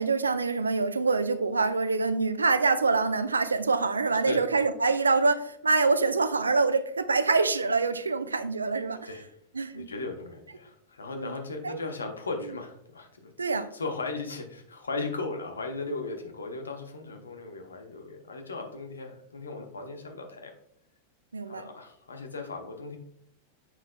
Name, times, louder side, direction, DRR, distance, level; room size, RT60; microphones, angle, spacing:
voice 1, 0.0-9.1 9.5-9.9 11.2-11.3 11.6-11.8 13.4-13.7 21.3-21.7, right 4 dB, 75° right, 12 dB, 0.4 m, -25 dB
voice 2, 9.7-13.3 13.7-20.5 21.5-23.0, left 3 dB, 75° left, 4 dB, 0.9 m, -37 dB
7.1 x 5.9 x 2.2 m, 0.71 s
figure-of-eight pair, 90°, 0 cm